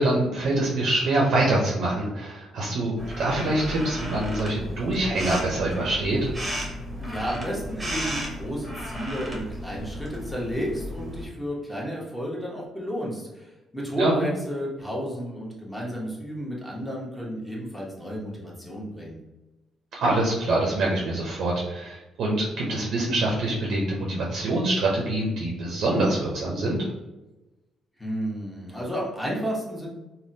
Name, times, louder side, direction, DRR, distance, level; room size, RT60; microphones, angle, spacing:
voice 1, 0.0-6.3 14.0-14.3 20.0-26.9, right 2 dB, 75° right, -3 dB, 0.6 m, -25 dB
sound 1, 3.0-11.3, equal, 20° right, 0.9 m, -34 dB
voice 2, 7.0-19.2 28.0-29.9, equal, 5° left, -4 dB, 1.0 m, -32 dB
3.5 x 2.2 x 2.7 m, 1.1 s
cardioid pair, 90°, 0 cm